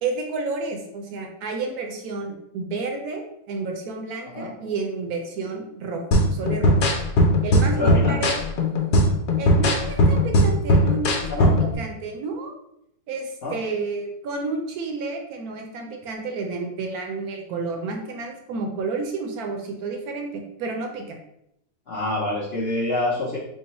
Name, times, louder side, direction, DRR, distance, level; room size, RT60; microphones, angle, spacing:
voice 1, 0.0-6.8 7.4-8.3 9.4-12.6 13.1-21.2, right 4 dB, 70° right, 2 dB, 1.0 m, -31 dB
sound 1, 6.1-11.7, left 1 dB, 80° left, 1.1 m, -19 dB
voice 2, 7.7-8.2 11.3-11.5 13.4-13.6 21.9-23.4, left 2 dB, 55° left, -6 dB, 0.7 m, -26 dB
3.8 x 2.1 x 4.0 m, 0.78 s
omnidirectional pair, 1.7 m